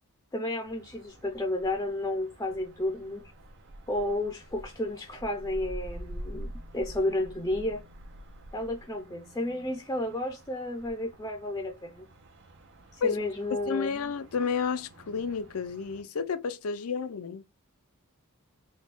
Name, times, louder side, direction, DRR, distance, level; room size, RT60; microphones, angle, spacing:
voice 1, 0.3-3.3 3.9-7.8 8.5-12.1 12.9-14.1, left 1 dB, 15° left, 0.6 m, -32 dB
sound 1, 0.6-16.0, equal, 55° right, 0.7 m, -47 dB
voice 2, 13.7-17.4, left 5 dB, 70° left, 0.5 m, -31 dB
4.2 x 2.3 x 3.6 m
head